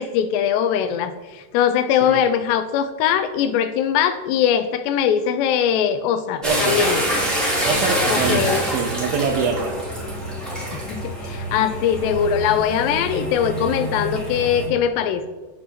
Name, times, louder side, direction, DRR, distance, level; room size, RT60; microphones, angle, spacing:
voice 1, 0.0-7.0 8.1-8.7 10.7-15.3, left 8 dB, 80° left, 11 dB, 2.7 m, -21 dB
sound 1, 6.4-14.7, equal, ahead, 2.9 m, -25 dB
voice 2, 6.4-6.8 7.6-9.8, right 5 dB, 75° right, 4 dB, 2.3 m, -24 dB
8.1 x 7.8 x 8.2 m, 1.2 s
omnidirectional pair, 5.1 m